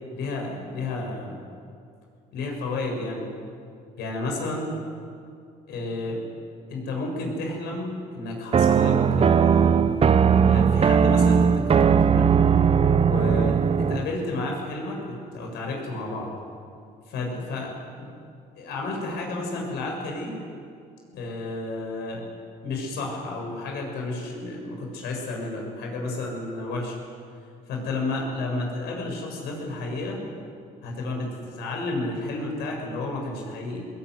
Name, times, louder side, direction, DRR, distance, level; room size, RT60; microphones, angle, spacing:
voice 1, 0.2-1.4 2.3-3.2 4.0-4.7 5.7-6.2 6.7-9.9 10.4-12.3 13.0-16.3 17.1-17.7 18.0-18.1 18.6-20.3 21.1-22.2 22.6-27.0 27.7-30.2 30.8-33.8, left 2 dB, 80° left, 0 dB, 7.1 m, -31 dB
sound 1, 8.5-14.1, right 7 dB, 35° right, 0.8 m, -19 dB
21.0 x 19.0 x 9.7 m, 2.3 s
cardioid pair, 110°, 17 cm